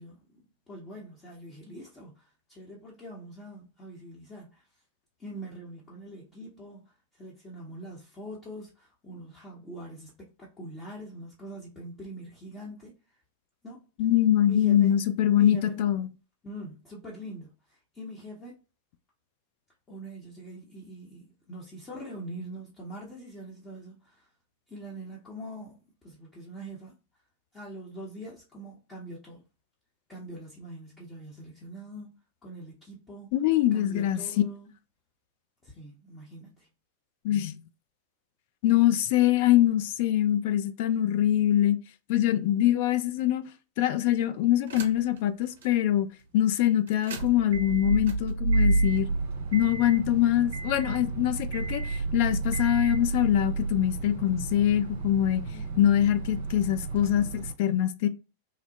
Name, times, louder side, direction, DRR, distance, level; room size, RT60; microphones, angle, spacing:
voice 1, 0.0-4.6 5.2-12.9 13.6-13.9 14.5-15.0 15.3-15.8 16.4-18.6 19.9-24.3 24.7-25.8 26.0-26.9 27.5-29.4 30.1-32.1 32.4-33.3 33.7-34.7 35.6-36.7 55.5-56.1, right 1 dB, 20° left, 0.7 m, -43 dB
voice 2, 14.0-16.1 33.3-34.2 37.2-37.6 38.6-41.8 42.1-43.4 43.8-46.1 46.3-49.1 49.5-51.8 52.1-55.4 55.8-58.1, left 12 dB, 50° left, 0.3 m, -24 dB
sound 1, 44.7-45.2 45.6-45.7 46.9-57.5, right 3 dB, 60° right, 0.5 m, -30 dB
2.8 x 2.0 x 2.7 m
figure-of-eight pair, 90°, 0 cm